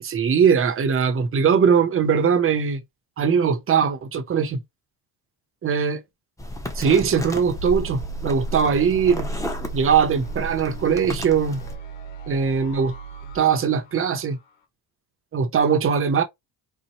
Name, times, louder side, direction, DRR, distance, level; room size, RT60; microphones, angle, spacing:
voice 1, 0.0-2.8 3.2-4.6 5.6-6.0 6.7-9.3 9.7-11.6 12.3-12.9 13.3-14.4 15.3-16.2, right 6 dB, 30° right, 0.7 m, -20 dB
sound 1, 6.4-11.8, left 1 dB, 5° left, 0.8 m, -33 dB
sound 2, 7.6-14.5, right 7 dB, 90° left, 0.9 m, -38 dB
4.2 x 2.1 x 3.0 m
cardioid pair, 120°, 43 cm